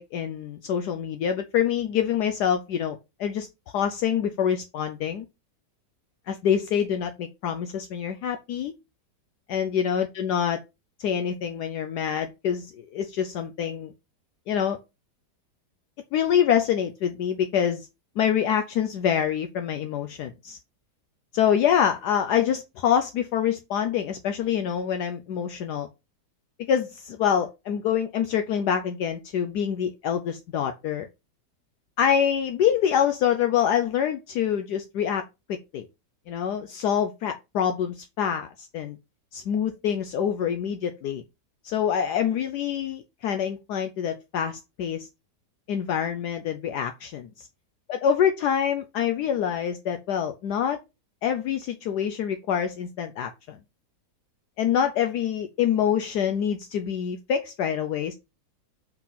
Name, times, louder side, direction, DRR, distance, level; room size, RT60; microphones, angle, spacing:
voice 1, 0.0-3.5 3.7-5.2 6.3-8.7 9.5-10.6 11.0-13.9 14.5-14.8 16.1-17.9 18.2-20.6 21.3-25.9 26.7-31.1 32.0-35.2 35.5-35.9 36.3-39.0 39.3-41.2 41.6-45.1 45.7-47.5 47.9-50.8 51.2-53.6 54.6-58.1, left 8 dB, 70° left, 1.1 m, -26 dB
4.6 x 4.0 x 5.5 m
omnidirectional pair, 1.9 m